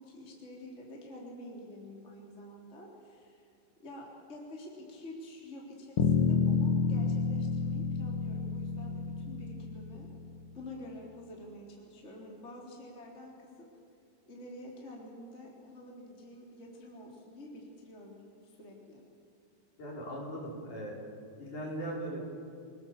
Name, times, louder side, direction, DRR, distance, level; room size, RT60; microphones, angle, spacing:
voice 1, 0.0-3.5 3.8-10.1 10.5-13.7 14.3-18.1 18.4-19.0, left 1 dB, 20° left, -2 dB, 3.5 m, -48 dB
sound 1, 6.0-10.3, left 5 dB, 65° left, 1.3 m, -30 dB
voice 2, 19.8-21.0 21.4-22.2, right 1 dB, 50° left, -3 dB, 6.0 m, -39 dB
27.5 x 19.5 x 7.4 m, 2.4 s
omnidirectional pair, 4.7 m